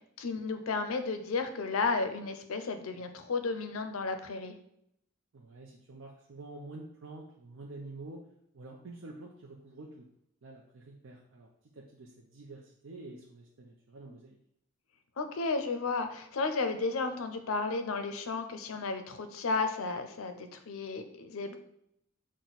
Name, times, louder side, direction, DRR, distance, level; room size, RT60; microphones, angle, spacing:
voice 1, 0.2-4.5 15.2-21.6, left 4 dB, 80° left, 8 dB, 0.5 m, -33 dB
voice 2, 5.3-8.2 8.5-10.1 10.4-14.4, right 2 dB, 70° right, -1 dB, 0.5 m, -48 dB
6.0 x 2.1 x 4.0 m, 0.75 s
head